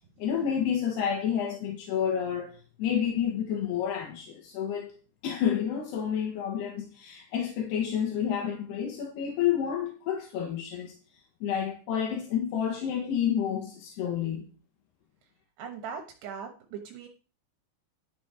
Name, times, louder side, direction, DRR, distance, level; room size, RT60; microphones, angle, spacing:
voice 1, 0.2-2.5 2.8-4.9 5.2-10.9 11.4-14.5, left 8 dB, 80° left, 3.6 m, -29 dB
voice 2, 15.6-17.1, right 6 dB, 85° right, 3.4 m, -40 dB
12.0 x 7.1 x 4.8 m
omnidirectional pair, 4.6 m